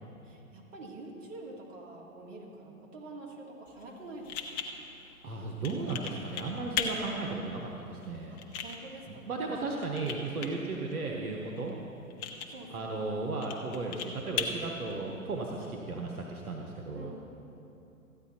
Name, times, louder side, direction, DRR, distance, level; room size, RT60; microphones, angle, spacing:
voice 1, 0.2-4.7 8.3-9.8 11.3-11.5 12.4-13.0 16.9-17.2, right 2 dB, 60° right, 0 dB, 2.1 m, -47 dB
sound 1, 3.7-15.7, left 6 dB, 20° left, 0.4 m, -40 dB
voice 2, 5.2-8.3 9.3-11.7 12.7-17.1, right 3 dB, 85° right, 0 dB, 1.2 m, -35 dB
13.5 x 9.3 x 4.3 m, 2.9 s
hypercardioid pair, 125°, 43 cm